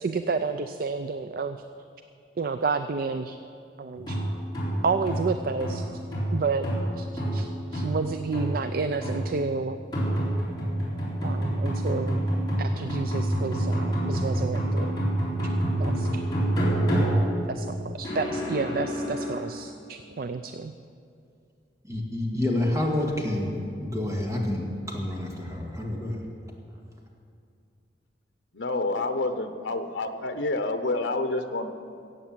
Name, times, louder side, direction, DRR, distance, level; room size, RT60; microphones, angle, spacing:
voice 1, 0.0-1.6 2.4-3.4 3.8-4.2 4.8-5.8 6.3-6.7 7.0-9.8 11.2-12.2 12.6-14.9 15.8-16.2 17.5-20.7, right 4 dB, 55° right, 9 dB, 0.4 m, -30 dB
sound 1, 3.9-19.3, right 1 dB, 25° left, 4.0 m, -28 dB
voice 2, 21.9-23.6 23.8-26.2, left 1 dB, 20° right, -1 dB, 1.9 m, -28 dB
voice 3, 28.5-31.7, left 2 dB, 90° left, 8 dB, 0.9 m, -28 dB
15.0 x 8.5 x 7.4 m, 2.4 s
head